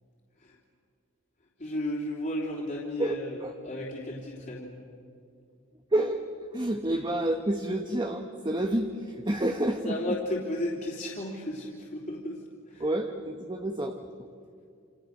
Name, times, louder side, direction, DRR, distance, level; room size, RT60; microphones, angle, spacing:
voice 1, 1.6-4.7 9.8-12.4 12.7-12.8, left 1 dB, 40° left, -4 dB, 3.4 m, -34 dB
voice 2, 3.0-3.5 5.9-6.2 6.5-10.1 12.8-14.0, right 1 dB, 20° right, 4 dB, 1.2 m, -29 dB
28.5 x 27.5 x 6.7 m, 2.4 s
head